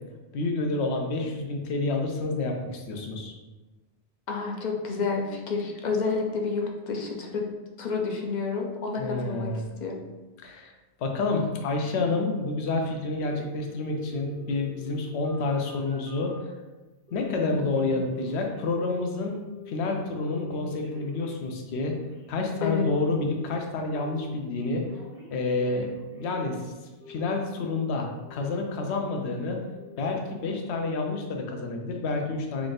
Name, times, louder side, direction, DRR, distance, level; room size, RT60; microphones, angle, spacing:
voice 1, 0.3-3.3 9.0-9.6 10.4-10.7 11.0-16.3 17.1-22.0 22.3-24.9 25.3-25.9 26.2-26.6 27.1-29.6 30.0-32.7, left 3 dB, 70° left, 2 dB, 0.9 m, -29 dB
voice 2, 4.3-7.5 7.8-9.5 9.8-10.0 17.3-17.5 17.9-18.0 22.6-22.9, left 4 dB, 50° left, 1 dB, 0.6 m, -29 dB
Telephone, 13.2-16.5 17.1-17.5 17.7-19.1 19.4-19.8 20.1-23.5 23.9-24.3 24.6-26.6 27.0-27.9 28.2-28.6 29.0-29.4 29.7-30.1 30.5-30.6, left 4 dB, 15° right, 0.7 m, -47 dB
3.5 x 2.5 x 3.9 m, 1.2 s
omnidirectional pair, 1.2 m